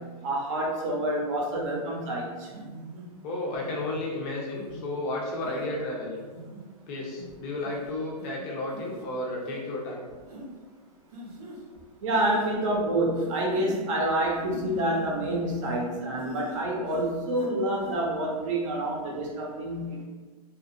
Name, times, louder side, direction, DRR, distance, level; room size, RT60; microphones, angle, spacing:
voice 1, 0.2-2.5 12.0-20.0, right 1 dB, 55° right, -2 dB, 0.7 m, -28 dB
sound 1, 1.7-1.8 2.5-3.1 3.6-4.0 4.6-4.8 5.4-5.7 6.2-6.6 7.2-7.3 7.6-7.8 8.2-8.3 8.7-9.0 9.4-9.6 10.3-10.5 11.1-11.6 12.1-12.5 13.1-13.9 14.3-15.9 16.2-16.6 16.9-17.5 17.8-18.0, right 1 dB, 85° right, 0.9 m, -43 dB
voice 2, 3.2-6.2 6.9-10.1, left 2 dB, 25° left, -2 dB, 0.4 m, -32 dB
2.7 x 2.4 x 2.5 m, 1.4 s
supercardioid pair, 165°, 20 cm